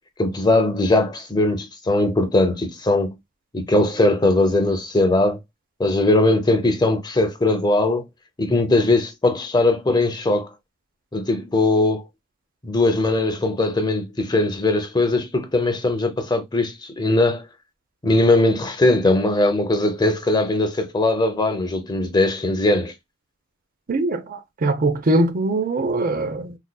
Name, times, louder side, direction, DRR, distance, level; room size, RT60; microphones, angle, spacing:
voice 1, 0.2-3.1 3.5-5.4 5.8-8.0 8.4-10.5 11.1-12.0 12.6-17.4 18.0-22.9, left 2 dB, 20° left, 0.5 m, -20 dB
voice 2, 23.9-26.5, right 2 dB, 40° right, 0.5 m, -22 dB
3.9 x 2.3 x 2.2 m
head